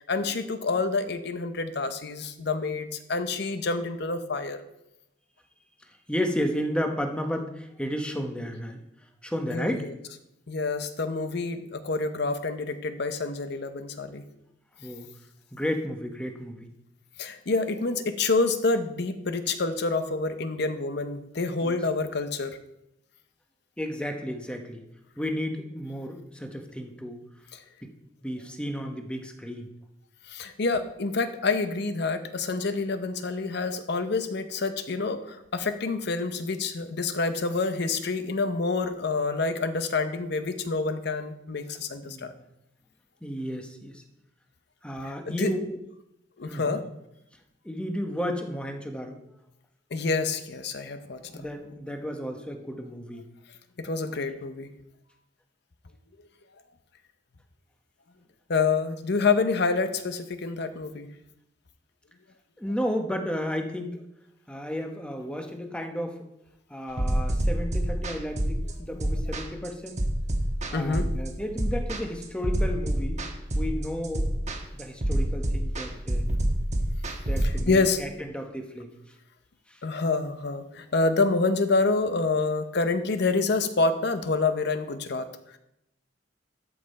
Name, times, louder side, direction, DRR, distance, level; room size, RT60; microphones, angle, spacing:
voice 1, 0.0-4.6 9.5-9.9 10.5-14.2 17.2-22.6 27.5-27.6 30.3-42.3 45.0-45.5 46.4-46.8 49.9-51.5 53.8-54.7 58.5-61.1 70.7-71.1 77.4-78.0 79.8-85.3, left 3 dB, 60° left, 10 dB, 0.7 m, -27 dB
voice 2, 5.9-8.8 9.2-9.9 14.8-15.1 15.5-16.7 21.6-21.8 23.8-24.8 25.2-27.2 27.8-27.9 28.2-29.7 42.0-42.4 43.2-44.0 44.8-45.8 46.4-46.8 47.6-49.2 51.3-53.2 62.6-64.0 64.5-66.3 66.7-70.0 70.7-73.2 73.5-74.4 74.7-76.3 77.3-78.9 79.7-79.8, equal, 5° left, 4 dB, 0.9 m, -33 dB
sound 1, 67.0-77.6, right 1 dB, 40° right, 1.1 m, -27 dB
13.0 x 5.4 x 4.1 m, 0.84 s
head